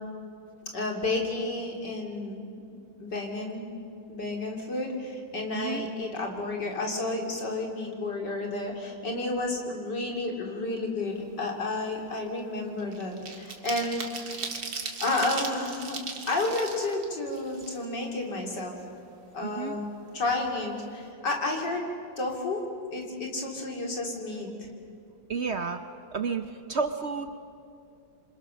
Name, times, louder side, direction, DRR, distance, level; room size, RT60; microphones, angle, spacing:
voice 1, 0.7-2.6 3.0-3.7 4.1-14.2 15.0-16.0 16.3-18.7 19.3-19.9 20.1-21.9 22.2-22.6 22.9-24.5, left 2 dB, 60° left, 1 dB, 3.8 m, -31 dB
voice 2, 5.5-5.9 19.4-19.8 25.3-25.8 26.1-27.4, right 5 dB, 55° right, 8 dB, 0.7 m, -31 dB
sound 1, 11.2-11.4 11.8-18.2 18.6-18.7 19.0-20.0 20.3-20.4 20.7-21.0, right 4 dB, 75° right, 2.7 m, -38 dB
28.0 x 25.5 x 6.5 m, 2.6 s
omnidirectional pair, 2.1 m